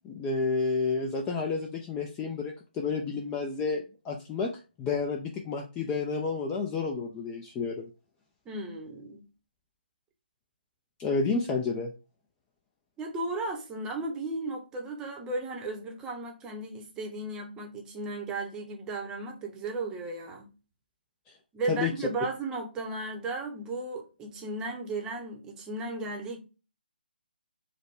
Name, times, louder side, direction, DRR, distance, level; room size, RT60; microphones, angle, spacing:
voice 1, 0.0-4.5 4.8-7.9 11.0-11.9 21.3-21.4 21.7-22.1, left 4 dB, 15° left, 0.4 m, -30 dB
voice 2, 8.5-9.3 13.0-20.5 21.5-26.4, right 2 dB, 10° right, 0.8 m, -35 dB
4.9 x 2.2 x 4.7 m
figure-of-eight pair, 150°, 6 cm